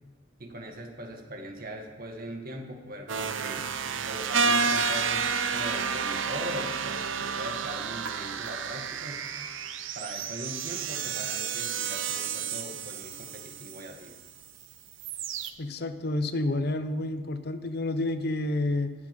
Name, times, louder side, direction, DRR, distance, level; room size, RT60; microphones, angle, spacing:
voice 1, 0.4-3.7 4.0-9.2 10.0-14.2, right 1 dB, 50° right, 3 dB, 1.8 m, -40 dB
sound 1, 3.1-13.9 14.3-14.6 14.9-15.5, right 6 dB, 75° right, 0.8 m, -31 dB
voice 2, 15.6-18.9, left 2 dB, 55° left, 11 dB, 0.7 m, -29 dB
17.5 x 7.4 x 5.3 m, 1.4 s
head